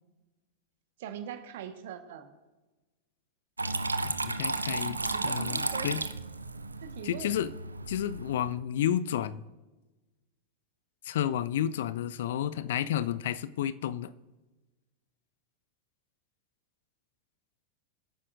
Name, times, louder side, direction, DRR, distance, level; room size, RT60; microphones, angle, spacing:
voice 1, 1.0-2.3 5.1-5.9 6.8-7.3, right 9 dB, 55° right, 8 dB, 1.4 m, -41 dB
Water tap faucet / Trickle dribble, 3.6-8.6, right 3 dB, 80° right, 0.6 m, -33 dB
voice 2, 4.0-6.0 7.0-7.5 7.9-9.4 11.0-14.1, left 10 dB, 55° left, 16 dB, 0.5 m, -31 dB
23.5 x 9.8 x 2.6 m, 1.1 s
figure-of-eight pair, 90°, 0 cm